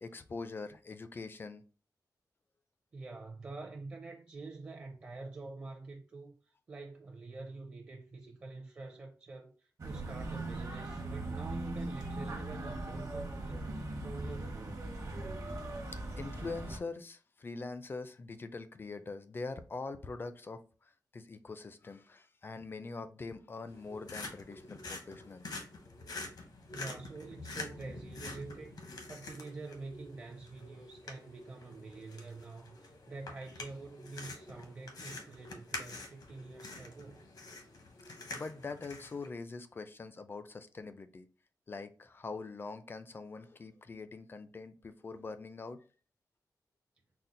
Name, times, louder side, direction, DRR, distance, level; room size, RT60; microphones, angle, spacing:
voice 1, 0.0-1.6 16.2-25.5 38.3-41.3 41.7-45.8, left 3 dB, 30° left, 0.3 m, -43 dB
voice 2, 2.9-6.4 6.7-14.9 26.7-28.8 29.1-37.3, right 3 dB, 35° right, 0.5 m, -47 dB
sound 1, 9.8-16.8, right 2 dB, 55° right, 0.9 m, -39 dB
sound 2, 23.7-39.3, left 3 dB, 75° left, 0.9 m, -47 dB
4.2 x 2.0 x 3.7 m
wide cardioid pair, 150°, 7 cm